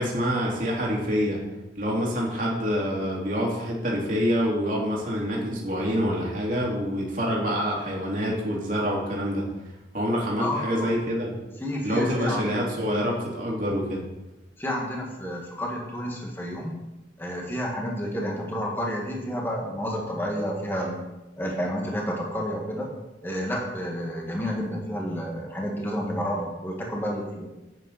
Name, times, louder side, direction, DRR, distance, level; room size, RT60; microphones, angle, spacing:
voice 1, 0.0-1.4 1.8-9.5 9.9-11.4 11.8-14.0, equal, 45° right, -3 dB, 3.0 m, -26 dB
voice 2, 10.4-11.0 11.6-12.5 14.6-16.8 17.2-21.0 21.4-22.9 23.2-27.5, equal, 10° left, -2 dB, 1.9 m, -30 dB
10.5 x 8.9 x 4.3 m, 1.0 s
head